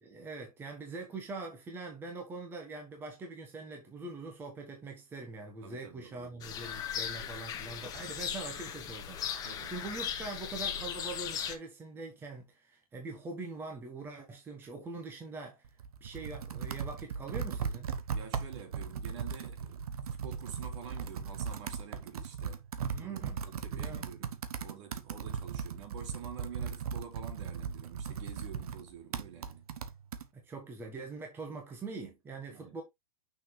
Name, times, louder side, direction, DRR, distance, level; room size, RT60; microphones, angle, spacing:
voice 1, 0.0-15.7 16.0-17.9 22.9-23.4 23.7-24.0 30.3-32.8, right 3 dB, 10° right, 1.4 m, -43 dB
voice 2, 5.6-6.6 9.4-9.8 18.1-22.6 23.0-29.7 32.5-32.8, right 8 dB, 55° right, 3.0 m, -48 dB
sound 1, 6.4-11.6, left 8 dB, 20° left, 1.2 m, -38 dB
Computer keyboard, 15.6-30.3, right 6 dB, 80° right, 1.2 m, -38 dB
6.3 x 5.7 x 3.3 m
hypercardioid pair, 155°, 19 cm